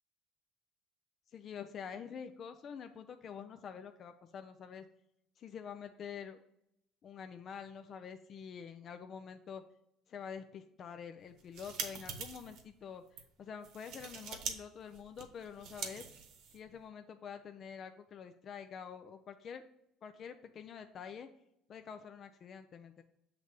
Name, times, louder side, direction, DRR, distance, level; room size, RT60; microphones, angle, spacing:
voice 1, 1.3-4.9 5.4-6.4 7.0-9.6 10.1-13.0 13.4-16.1 16.5-19.6 20.0-21.3 21.7-23.0, left 7 dB, 40° left, 7 dB, 0.4 m, -47 dB
sound 1, 11.3-12.6 13.1-13.2 13.6-14.6 14.8-16.8, right 6 dB, 65° right, 0.9 m, -44 dB
6.8 x 3.2 x 5.1 m, 0.77 s
cardioid pair, 130°, 0 cm